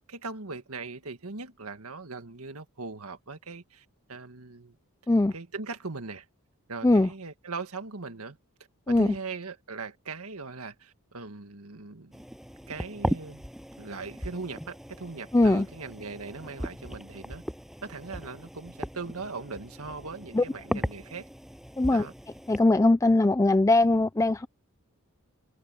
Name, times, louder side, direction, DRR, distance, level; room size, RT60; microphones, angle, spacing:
voice 1, 0.0-4.8 5.3-6.3 6.7-8.4 8.9-12.2 12.7-13.5 13.8-17.4 17.8-21.3 21.9-22.1, right 4 dB, 75° right, 1.9 m, -40 dB
sound 1, 12.1-22.6, equal, ahead, 7.7 m, -38 dB
voice 2, 15.3-15.7 20.3-20.4 21.8-22.1 22.5-24.5, left 2 dB, 15° left, 0.4 m, -21 dB
head